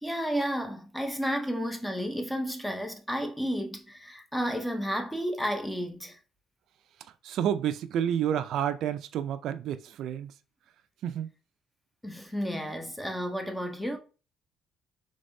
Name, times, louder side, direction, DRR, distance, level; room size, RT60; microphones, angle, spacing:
voice 1, 0.0-6.2 12.0-14.0, equal, 5° left, 0.6 m, -32 dB
voice 2, 7.2-10.3 11.0-11.3, right 9 dB, 60° right, 0.4 m, -29 dB
5.1 x 3.5 x 2.6 m
cardioid pair, 165°, 0 cm